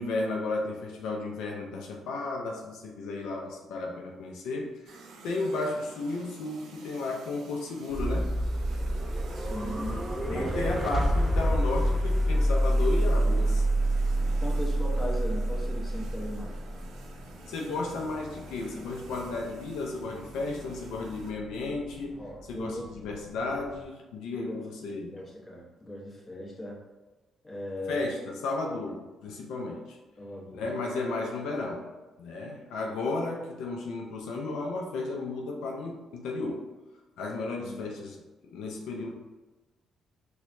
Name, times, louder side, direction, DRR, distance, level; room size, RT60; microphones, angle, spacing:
voice 1, 0.0-8.3 10.3-13.6 17.5-22.2 22.5-25.2 27.9-30.0 30.5-31.9 32.2-36.7 37.2-38.2 38.5-39.1, left 3 dB, 90° left, 0 dB, 0.4 m, -33 dB
sound 1, 4.9-21.3, right 4 dB, 80° right, 0.4 m, -51 dB
sound 2, 7.9-23.8, right 1 dB, 15° right, 0.4 m, -29 dB
voice 2, 9.3-10.7 14.4-16.6 22.2-22.8 24.4-26.8 27.4-28.1 30.2-30.7 37.6-37.8, left 1 dB, 25° left, -4 dB, 1.1 m, -38 dB
4.4 x 2.3 x 2.5 m, 1.2 s
cardioid pair, 90°, 0 cm